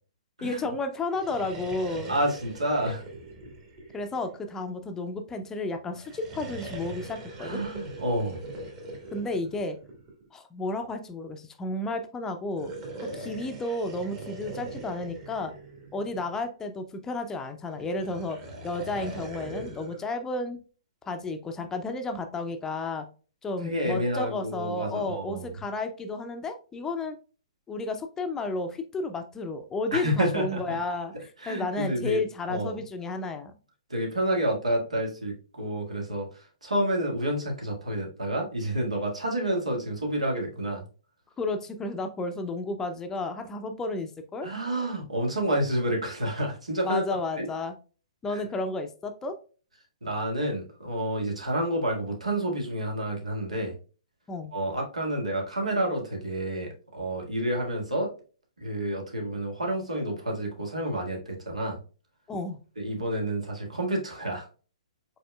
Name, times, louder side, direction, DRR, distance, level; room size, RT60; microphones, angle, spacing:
voice 1, 0.4-2.1 3.9-7.6 9.1-9.8 10.3-12.7 13.0-15.5 15.9-20.6 21.1-23.1 23.4-27.2 27.7-33.5 41.4-44.5 46.8-47.7 48.2-49.4 54.3-54.5 62.3-62.6, left 2 dB, 15° left, 6 dB, 0.5 m, -32 dB
sound 1, 1.0-4.6 5.9-10.3 12.4-16.4 17.7-20.0, right 2 dB, 35° right, 1.6 m, -41 dB
voice 2, 2.1-3.0 7.4-8.4 23.6-25.5 29.9-30.8 31.4-32.2 32.5-32.8 33.9-40.9 44.4-47.0 47.4-47.5 48.3-48.4 50.0-53.7 54.5-58.1 58.6-61.8 62.8-64.5, right 1 dB, 85° right, 0 dB, 1.7 m, -29 dB
5.1 x 4.2 x 2.2 m, 0.37 s
figure-of-eight pair, 120°, 3 cm